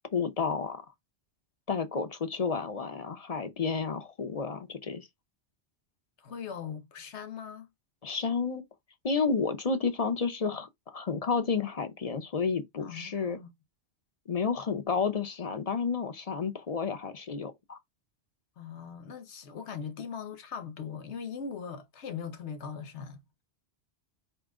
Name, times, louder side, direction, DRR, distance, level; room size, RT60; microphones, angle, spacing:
voice 1, 0.1-0.8 1.7-5.1 8.0-8.6 9.0-13.4 14.3-17.8, left 5 dB, 40° left, 0.7 m, -31 dB
voice 2, 6.2-7.7 12.8-13.5 18.6-23.2, left 6 dB, 90° left, 1.2 m, -40 dB
4.9 x 3.0 x 3.6 m
omnidirectional pair, 1.1 m